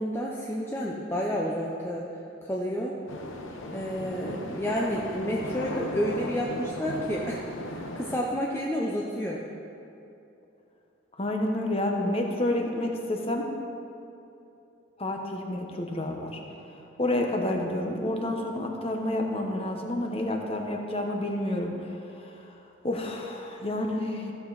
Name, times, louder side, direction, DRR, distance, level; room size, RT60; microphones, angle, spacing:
voice 1, 0.0-2.1 2.4-2.9 3.7-9.4, equal, 10° left, -3 dB, 0.6 m, -30 dB
sound 1, 3.1-8.2, left 1 dB, 80° left, 1.0 m, -36 dB
voice 2, 11.2-13.5 15.0-16.4 17.0-22.0 22.8-24.3, left 1 dB, 30° left, 2 dB, 0.9 m, -29 dB
14.5 x 6.8 x 4.0 m, 2.8 s
head